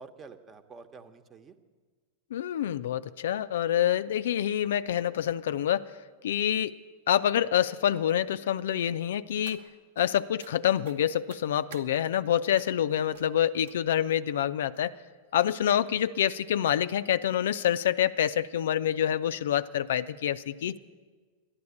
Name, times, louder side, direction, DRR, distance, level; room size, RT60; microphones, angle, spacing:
voice 1, 0.0-1.6 20.7-20.8, right 4 dB, 25° right, 10 dB, 1.1 m, -48 dB
voice 2, 2.3-5.9 6.2-6.8 7.1-9.6 10.0-14.9 15.3-20.8, left 10 dB, 65° left, 14 dB, 0.4 m, -27 dB
sound 1, 9.1-10.0 10.4-10.5 10.8-11.9 12.6-12.8 13.1-13.3 13.6-14.1 14.7-14.8 15.3-15.4 15.7-15.8, right 8 dB, 60° right, 1.1 m, -52 dB
13.0 x 10.5 x 8.5 m, 1.5 s
figure-of-eight pair, 95°, 0 cm